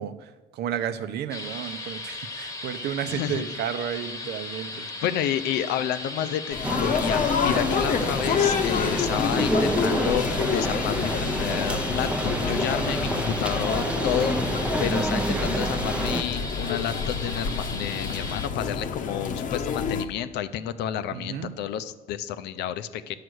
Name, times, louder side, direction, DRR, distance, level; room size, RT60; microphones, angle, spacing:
voice 1, 0.0-4.9 7.5-7.7 15.1-15.7 21.1-21.6, right 9 dB, 75° right, 11 dB, 0.7 m, -33 dB
sound 1, 1.3-18.5, left 2 dB, 20° left, 1.1 m, -37 dB
voice 2, 3.1-3.4 4.7-12.1 12.5-23.1, left 10 dB, 80° left, 11 dB, 0.6 m, -30 dB
sound 2, 6.5-20.1, left 6 dB, 50° left, 0.8 m, -28 dB
sound 3, 6.6-16.2, right 1 dB, 5° right, 0.6 m, -29 dB
9.5 x 6.6 x 6.3 m, 1.2 s
cardioid pair, 110°, 17 cm